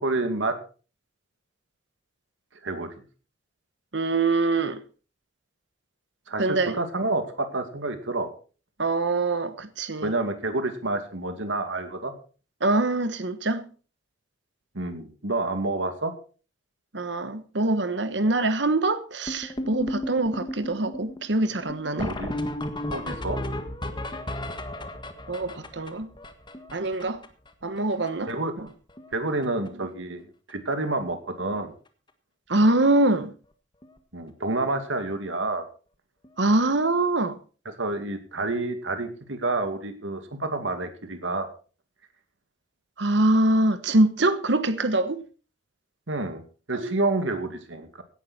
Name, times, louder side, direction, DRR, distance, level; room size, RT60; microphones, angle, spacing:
voice 1, 0.0-0.6 2.6-2.9 6.3-8.3 10.0-12.1 14.7-16.1 22.0-22.3 22.9-23.4 28.3-28.5 29.1-30.2 30.5-31.7 34.1-35.6 37.8-41.5 46.1-46.4 46.7-48.0, right 2 dB, 85° right, 2.4 m, -28 dB
voice 2, 3.9-4.8 6.4-6.8 8.8-10.1 12.6-13.6 16.9-22.1 25.3-26.1 26.7-27.2 27.6-28.3 28.6-28.7 32.5-33.3 36.4-37.4 43.0-45.2 46.7-47.0, right 2 dB, 65° right, 1.2 m, -24 dB
sound 1, 19.3-27.5 27.8-27.9 28.1-28.3 28.6-29.1 29.4-29.7 30.5-30.6 31.0-31.1 31.4-31.6 33.8-33.9 36.2-36.3, left 1 dB, 25° left, 1.6 m, -34 dB
17.0 x 11.0 x 4.3 m
head